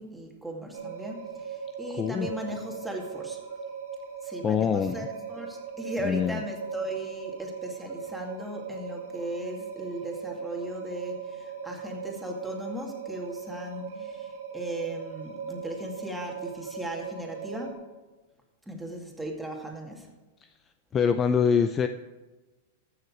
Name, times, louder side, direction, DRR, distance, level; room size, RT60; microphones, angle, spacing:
voice 1, 0.0-3.4 4.2-17.8 18.7-20.1, right 1 dB, 5° right, 0 dB, 2.3 m, -37 dB
sound 1, 0.7-17.7, right 6 dB, 75° right, 2.7 m, -39 dB
voice 2, 1.9-2.3 4.4-5.0 6.0-6.4 20.9-21.9, left 7 dB, 25° left, 10 dB, 0.5 m, -24 dB
14.5 x 6.7 x 4.9 m, 1.2 s
hypercardioid pair, 115°, 0 cm